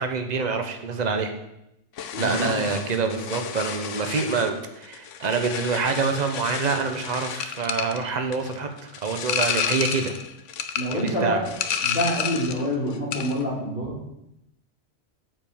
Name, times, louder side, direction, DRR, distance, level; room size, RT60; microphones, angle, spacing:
voice 1, 0.0-1.3 2.2-10.1 10.9-11.4, right 4 dB, 40° right, 5 dB, 1.0 m, -26 dB
sound 1, 2.0-12.7 12.9-13.4, left 8 dB, 85° left, 1.1 m, -31 dB
voice 2, 2.1-2.5 10.8-11.4 11.8-14.0, equal, 50° left, -6 dB, 4.0 m, -26 dB
8.9 x 5.3 x 7.1 m, 0.85 s
omnidirectional pair, 1.2 m